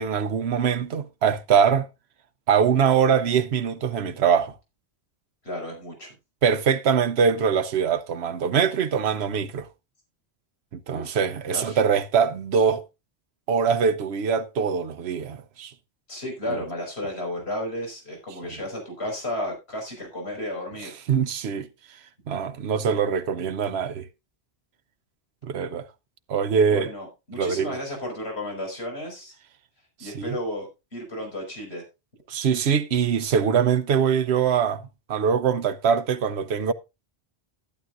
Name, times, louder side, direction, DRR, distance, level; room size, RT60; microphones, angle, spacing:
voice 1, 0.0-1.9 2.5-4.5 6.4-9.7 10.7-12.8 13.5-15.7 21.1-21.7 22.3-24.1 25.4-25.9 26.3-26.9 27.4-27.8 30.0-30.4 32.3-34.8 35.1-36.7, right 7 dB, 85° right, 1.0 m, -23 dB
voice 2, 5.4-6.1 10.9-11.2 11.5-11.8 16.1-20.9 26.7-29.4 30.0-31.8, left 1 dB, 90° left, 5.5 m, -33 dB
12.5 x 12.0 x 2.5 m
omnidirectional pair, 1.1 m